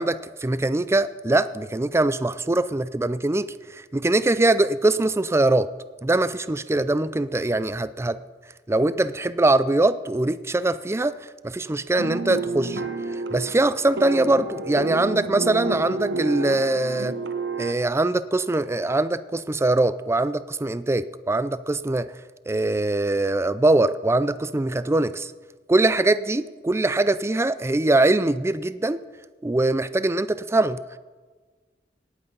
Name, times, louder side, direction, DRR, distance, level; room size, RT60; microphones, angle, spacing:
voice 1, 0.0-3.5 3.9-5.7 6.0-8.2 8.7-11.2 11.4-12.8 13.3-17.1 17.6-22.1 22.5-25.3 25.7-29.0 29.4-30.8, right 2 dB, 15° right, 15 dB, 0.4 m, -22 dB
sound 1, 12.0-17.7, right 3 dB, 85° right, 1.0 m, -30 dB
18.0 x 8.2 x 5.3 m, 1.4 s
head